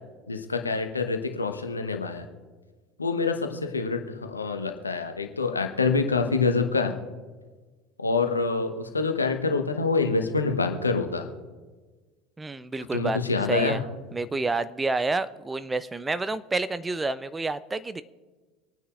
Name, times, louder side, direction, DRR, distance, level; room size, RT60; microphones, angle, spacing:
voice 1, 0.3-2.3 3.0-6.9 8.0-11.3 12.9-13.8, left 4 dB, 85° left, 6 dB, 1.0 m, -26 dB
voice 2, 12.4-13.2 13.5-13.8 14.1-18.0, right 3 dB, 15° right, 14 dB, 0.5 m, -29 dB
26.0 x 9.5 x 2.5 m, 1.3 s
figure-of-eight pair, 70°, 0 cm